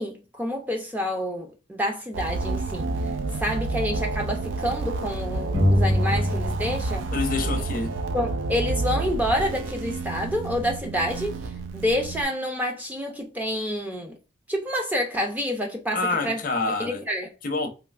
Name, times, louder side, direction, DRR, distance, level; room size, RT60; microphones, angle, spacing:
voice 1, 0.0-2.9 3.4-7.1 8.1-11.4 11.7-14.2 14.5-16.4 16.8-17.3, equal, 10° right, 0.5 m, -28 dB
sound 1, 2.1-12.2, right 3 dB, 70° right, 0.4 m, -29 dB
sound 2, 5.5-7.0 7.3-9.1, equal, 45° right, 1.5 m, -26 dB
voice 2, 7.1-7.9 15.9-17.0 17.4-17.7, left 3 dB, 45° left, 0.5 m, -27 dB
3.2 x 2.6 x 2.4 m
head